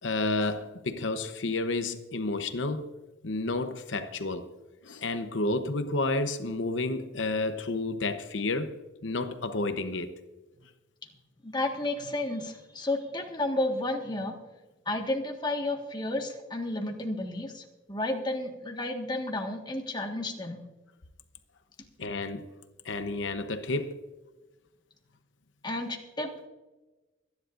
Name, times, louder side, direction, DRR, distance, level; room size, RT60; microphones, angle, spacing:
voice 1, 0.0-2.9 3.2-4.5 4.8-8.7 9.0-10.1 22.0-22.4 22.8-23.9, left 2 dB, 80° left, 0.9 m, -30 dB
voice 2, 11.4-14.3 14.8-20.6 25.6-26.5, left 1 dB, 25° left, 1.5 m, -32 dB
25.0 x 10.5 x 2.5 m
head